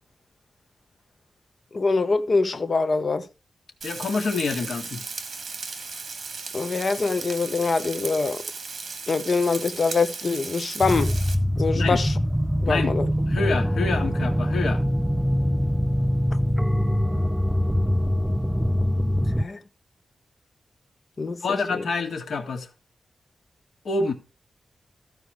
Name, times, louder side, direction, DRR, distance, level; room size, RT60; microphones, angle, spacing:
voice 1, 1.7-3.2 6.5-8.4 9.1-11.1 11.6-12.1 12.6-13.1 19.4-19.6 21.2-21.6, left 4 dB, 45° left, 1.0 m, -24 dB
voice 2, 3.8-5.0 11.7-12.0 12.7-12.9 13.3-14.8 21.4-22.7 23.8-24.1, left 4 dB, 75° left, 2.0 m, -27 dB
Frying (food), 3.8-11.3, right 4 dB, 50° right, 1.8 m, -36 dB
sound 1, 10.8-19.4, equal, 5° right, 0.4 m, -23 dB
14.5 x 4.8 x 4.8 m
wide cardioid pair, 120°, 0 cm